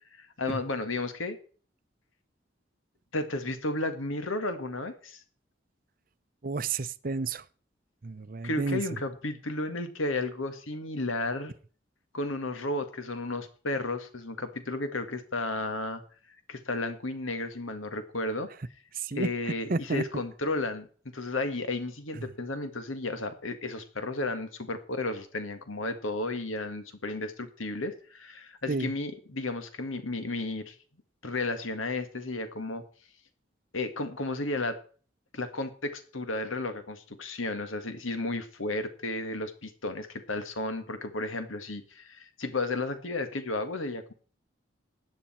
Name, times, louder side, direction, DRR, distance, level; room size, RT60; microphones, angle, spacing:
voice 1, 0.2-1.4 3.1-5.2 8.4-11.5 12.1-16.0 16.5-18.5 19.1-20.9 21.1-30.8 31.2-32.8 33.7-34.8 35.3-44.1, left 2 dB, 90° left, 1.8 m, -33 dB
voice 2, 6.4-7.4 8.0-8.8 18.9-20.0 22.2-22.3 28.7-28.9, right 3 dB, 45° right, 0.6 m, -31 dB
16.0 x 9.9 x 4.4 m
head